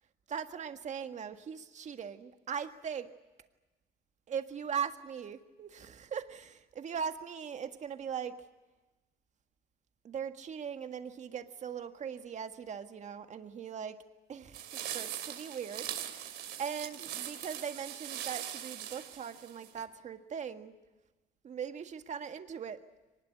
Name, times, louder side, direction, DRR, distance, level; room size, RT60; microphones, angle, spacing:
voice 1, 0.3-3.1 4.3-8.4 10.0-14.0 14.3-14.6 14.9-20.7 21.4-22.8, right 7 dB, 45° right, 8 dB, 1.8 m, -40 dB
sound 1, 14.5-19.8, right 11 dB, 80° right, 2.8 m, -41 dB
23.5 x 20.0 x 9.8 m, 1.1 s
cardioid pair, 110°, 17 cm